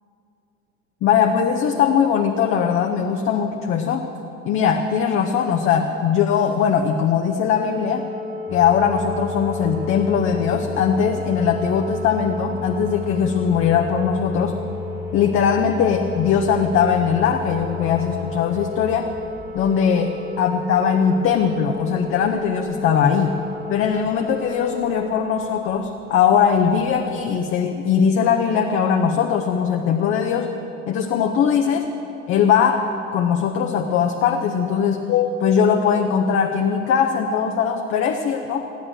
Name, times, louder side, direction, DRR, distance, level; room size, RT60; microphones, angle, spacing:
voice 1, 1.0-4.1 4.5-8.1 8.5-14.5 15.1-19.1 19.5-23.3 23.7-30.5 30.9-31.9 32.3-38.7, left 7 dB, 30° left, 4 dB, 0.7 m, -20 dB
sound 1, 7.5-25.5, left 4 dB, 60° right, 4.3 m, -34 dB
sound 2, 8.5-27.5, left 2 dB, 10° right, 1.7 m, -37 dB
15.5 x 11.5 x 6.3 m, 3.0 s
figure-of-eight pair, 75°, 40 cm